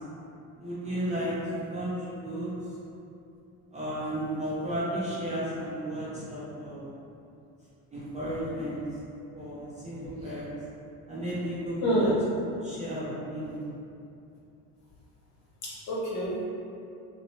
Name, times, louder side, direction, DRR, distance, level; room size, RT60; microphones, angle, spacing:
voice 1, 0.6-2.5 3.7-6.9 7.9-8.8 9.4-10.5 11.1-12.1 12.6-13.6, equal, 20° right, -9 dB, 0.4 m, -33 dB
voice 2, 11.8-12.1 15.6-16.4, right 1 dB, 45° left, -7 dB, 0.8 m, -28 dB
2.6 x 2.0 x 2.9 m, 2.7 s
cardioid pair, 120°, 38 cm